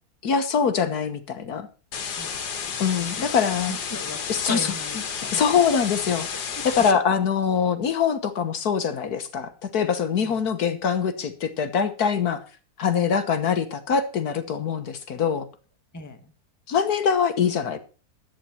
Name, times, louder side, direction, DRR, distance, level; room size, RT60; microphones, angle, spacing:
voice 1, 0.2-1.7 2.8-3.7 4.3-4.7 5.3-6.3 6.6-12.4 12.8-15.5 16.7-17.8, left 7 dB, 70° left, 10 dB, 1.7 m, -23 dB
sound 1, 1.9-6.9, left 6 dB, 85° left, 1.9 m, -32 dB
voice 2, 2.7-5.6 6.5-6.7 10.2-10.5 15.9-16.3, left 2 dB, 10° left, 7 dB, 1.3 m, -38 dB
11.5 x 9.0 x 5.7 m, 0.36 s
omnidirectional pair, 1.7 m